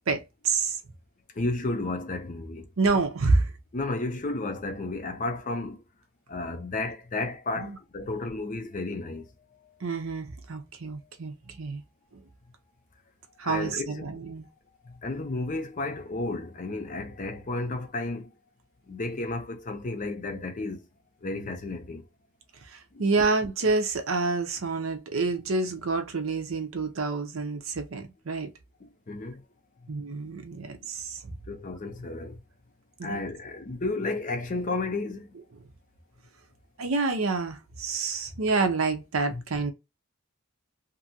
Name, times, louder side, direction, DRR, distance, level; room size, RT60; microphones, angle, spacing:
voice 1, 0.1-0.8 2.8-3.5 7.6-7.8 9.8-11.8 13.4-14.5 22.7-28.5 29.9-31.3 33.0-33.2 36.8-39.7, right 3 dB, 80° right, 0.7 m, -28 dB
voice 2, 1.4-2.7 3.7-5.8 6.3-9.3 13.4-14.1 14.8-18.3 18.9-20.8 21.2-22.1 22.9-23.1 28.8-29.4 31.5-32.4 33.0-35.4 39.3-39.4, left 2 dB, 40° left, 0.5 m, -32 dB
2.7 x 2.6 x 2.7 m
head